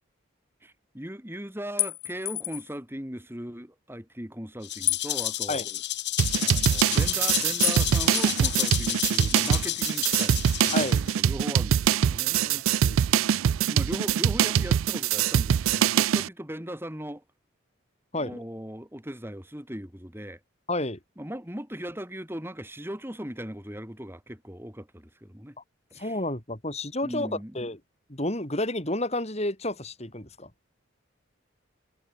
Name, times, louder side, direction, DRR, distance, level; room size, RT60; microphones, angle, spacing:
voice 1, 0.6-5.6 6.4-12.4 13.7-17.2 18.2-20.4 21.2-25.6 25.9-26.2 27.0-27.6, equal, 10° right, 3.5 m, -38 dB
sound 1, 1.8-2.8 4.9-5.9 7.6-7.9 8.2-9.1, left 19 dB, 80° left, 1.5 m, -31 dB
Rattle (instrument), 4.6-11.2, left 14 dB, 55° left, 2.8 m, -30 dB
sound 2, 6.2-16.3, right 9 dB, 85° right, 0.4 m, -23 dB
voice 2, 10.7-11.0 12.3-13.0 18.1-18.4 20.7-21.0 25.9-27.8 28.1-30.5, left 1 dB, 30° left, 4.5 m, -31 dB
head